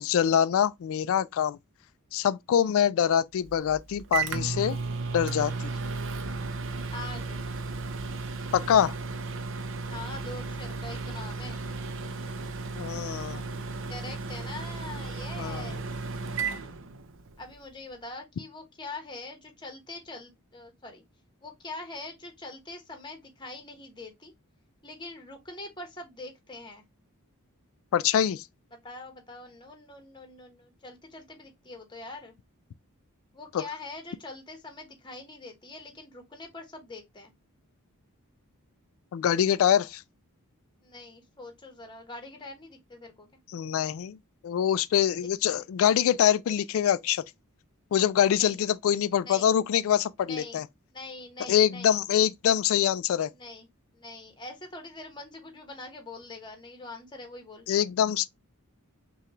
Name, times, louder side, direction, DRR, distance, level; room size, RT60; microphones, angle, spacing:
voice 1, 0.0-1.6 2.1-4.8 5.1-5.7 8.5-8.9 12.8-13.4 15.4-15.7 27.9-28.4 39.1-40.0 43.5-44.2 44.4-47.2 47.9-50.7 51.5-53.3 57.7-58.3, left 9 dB, 65° left, 0.3 m, -24 dB
Microwave oven, 3.4-17.5, right 4 dB, 60° right, 0.6 m, -34 dB
voice 2, 6.9-7.4 9.9-11.6 13.9-15.8 17.4-21.0 21.4-24.3 24.8-26.8 28.7-32.3 33.3-37.3 40.8-43.3 45.5-45.9 48.4-48.6 49.2-49.5 50.3-50.6 50.9-52.0 53.3-53.7 53.9-57.7, left 2 dB, 20° left, 1.1 m, -43 dB
5.7 x 2.3 x 3.0 m
head